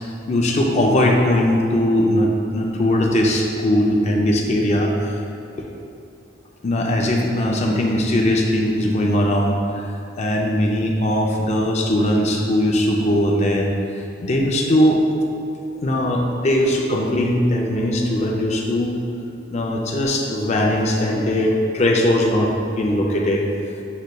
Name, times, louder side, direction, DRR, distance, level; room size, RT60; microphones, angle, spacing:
voice 1, 0.3-5.1 5.6-5.7 6.6-9.8 10.2-13.7 14.2-15.0 15.8-18.9 19.5-23.5, left 1 dB, 35° left, 0 dB, 0.4 m, -19 dB
6.4 x 3.1 x 2.2 m, 2.6 s
head